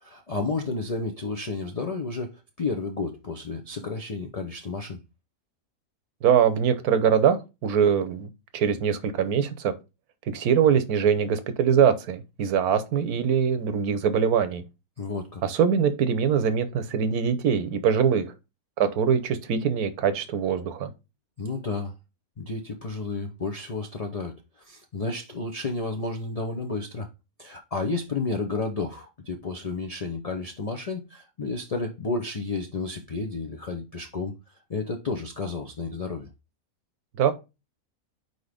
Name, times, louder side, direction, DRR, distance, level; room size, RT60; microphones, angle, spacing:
voice 1, 0.0-5.0 15.0-15.4 21.4-21.9 22.4-24.3 24.7-27.1 27.4-34.3 34.7-36.3, left 3 dB, 45° left, 0.5 m, -31 dB
voice 2, 6.2-9.7 10.3-14.6 15.4-18.2 18.8-20.9 37.2-37.3, right 7 dB, 80° right, 1.3 m, -23 dB
4.7 x 4.1 x 5.0 m
omnidirectional pair, 1.6 m